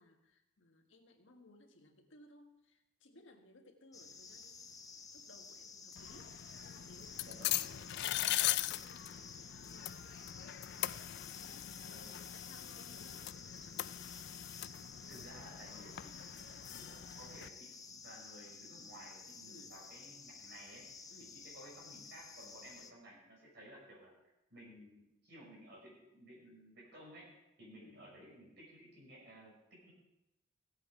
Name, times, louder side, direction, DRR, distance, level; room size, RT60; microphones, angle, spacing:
voice 1, 0.0-4.7 5.1-10.3 10.9-14.0 19.5-19.7 21.1-21.4 27.8-28.1, left 2 dB, 85° left, 4 dB, 1.6 m, -62 dB
sound 1, 3.9-22.9, left 5 dB, 20° left, 0.7 m, -52 dB
sound 2, 6.0-17.5, left 14 dB, 60° left, 0.3 m, -40 dB
voice 2, 7.2-7.6 11.8-12.1 15.1-16.5 16.8-20.8 21.2-24.1 24.5-27.3 27.6-29.9, right 1 dB, 60° right, -3 dB, 5.8 m, -56 dB
16.5 x 8.3 x 4.9 m, 0.91 s
head